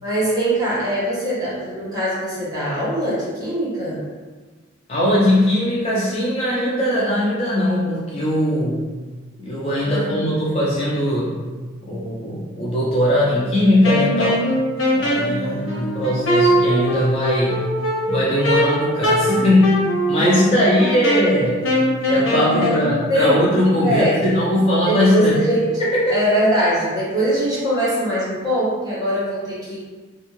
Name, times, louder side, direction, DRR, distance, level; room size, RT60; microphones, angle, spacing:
voice 1, 0.0-4.0 9.8-10.5 15.1-16.0 20.1-20.4 22.5-24.2 24.9-25.7 26.1-29.8, equal, 20° right, -10 dB, 0.9 m, -22 dB
voice 2, 4.9-8.9 9.4-11.4 11.9-14.5 14.9-17.6 18.1-19.8 20.1-21.7 22.1-25.4 25.9-26.1, left 1 dB, 30° left, -6 dB, 0.4 m, -19 dB
Wind instrument woodwind instrument, 13.8-22.8, equal, 80° left, 0.6 m, -21 dB
2.6 x 2.3 x 3.0 m, 1.4 s
head